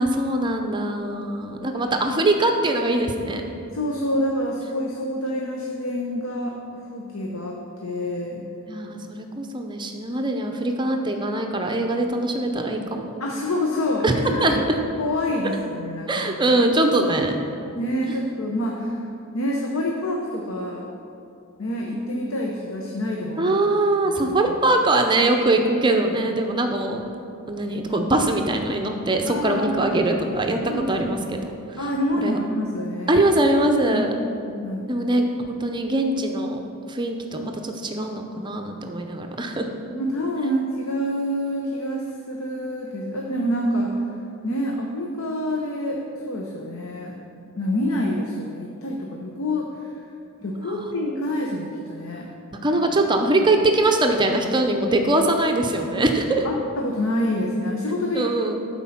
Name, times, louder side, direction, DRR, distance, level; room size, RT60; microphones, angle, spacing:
voice 1, 0.0-3.4 8.7-13.1 14.0-14.1 14.4-14.8 15.4-15.6 16.1-17.4 18.1-18.2 23.4-27.0 27.5-31.2 31.7-31.8 32.2-32.4 33.1-34.1 34.9-36.6 36.9-39.7 52.6-56.5 58.1-58.6, right 2 dB, 20° right, 4 dB, 0.6 m, -22 dB
voice 2, 3.7-6.6 6.9-8.5 13.2-14.6 15.0-16.6 17.7-19.0 19.3-20.9 21.6-23.9 24.5-24.6 29.3-30.2 30.6-31.2 31.8-33.2 33.9-34.1 34.4-34.8 39.8-43.9 44.4-47.2 47.6-50.0 50.4-52.3 56.4-58.4, left 1 dB, 75° left, 0 dB, 0.8 m, -27 dB
11.5 x 4.5 x 5.7 m, 2.6 s
head